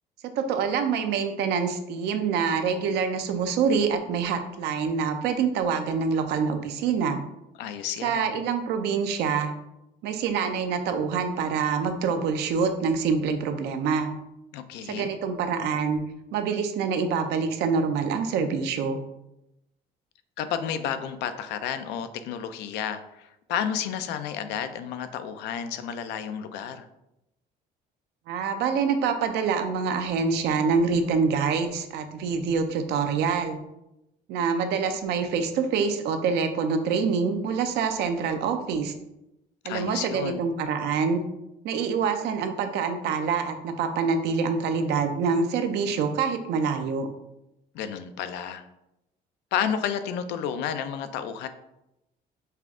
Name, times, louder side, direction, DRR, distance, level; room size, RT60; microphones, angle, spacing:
voice 1, 0.2-7.2 8.0-9.5 10.0-14.1 14.8-16.0 16.3-19.0 28.3-33.6 34.3-38.9 39.6-41.2 41.6-47.1, right 5 dB, 80° right, 7 dB, 0.6 m, -26 dB
voice 2, 7.6-8.3 14.5-15.1 20.4-26.9 39.6-40.4 47.7-48.6 49.5-51.5, left 8 dB, 90° left, 10 dB, 0.4 m, -31 dB
5.6 x 2.5 x 3.6 m, 0.88 s
cardioid pair, 110°, 17 cm